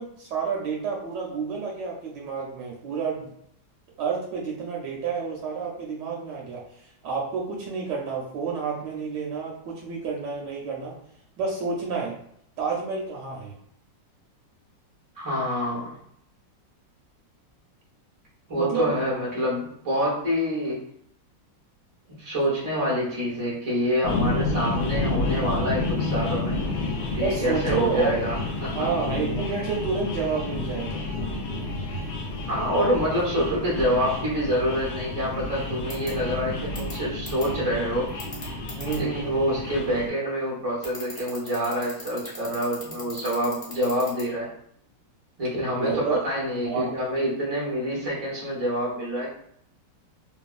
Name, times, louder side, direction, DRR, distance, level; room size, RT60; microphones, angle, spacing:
voice 1, 0.0-3.3 4.0-6.6 7.0-10.9 11.4-12.2 12.6-13.5 18.6-19.0 27.2-28.1 28.7-31.0 38.7-39.4 45.8-46.2 46.6-46.9, right 5 dB, 75° right, -3 dB, 1.2 m, -29 dB
voice 2, 15.1-15.9 18.5-20.8 22.2-26.6 27.1-28.9 32.5-38.1 39.0-44.5 45.4-49.3, equal, 55° right, -7 dB, 0.4 m, -26 dB
sound 1, 24.0-40.1, left 2 dB, 70° left, 1.1 m, -30 dB
sound 2, 35.9-36.1 36.8-36.9 37.3-37.4 38.2-39.0 40.8-44.2, left 3 dB, 45° left, 1.0 m, -38 dB
3.0 x 2.2 x 2.4 m, 0.70 s
omnidirectional pair, 2.0 m